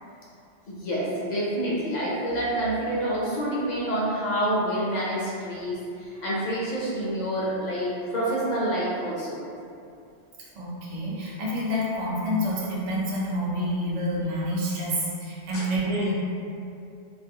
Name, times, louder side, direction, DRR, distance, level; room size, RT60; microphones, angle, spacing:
voice 1, 0.7-9.5 15.5-15.6, right 1 dB, 55° left, -7 dB, 0.5 m, -28 dB
voice 2, 10.5-16.1, equal, 50° right, -6 dB, 0.5 m, -28 dB
2.4 x 2.1 x 2.6 m, 2.5 s
omnidirectional pair, 1.1 m